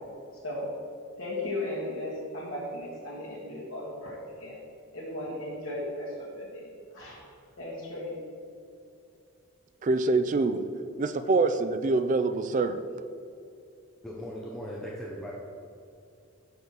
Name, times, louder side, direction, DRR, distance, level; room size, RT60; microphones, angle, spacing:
voice 1, 1.2-4.6 4.9-6.7 6.9-7.2 7.6-8.2, left 1 dB, 70° left, -8 dB, 1.7 m, -36 dB
voice 2, 9.8-10.6 11.0-12.8, right 3 dB, 35° right, 9 dB, 0.4 m, -25 dB
voice 3, 14.0-15.3, equal, ahead, -5 dB, 0.7 m, -38 dB
6.2 x 5.6 x 5.9 m, 2.5 s
head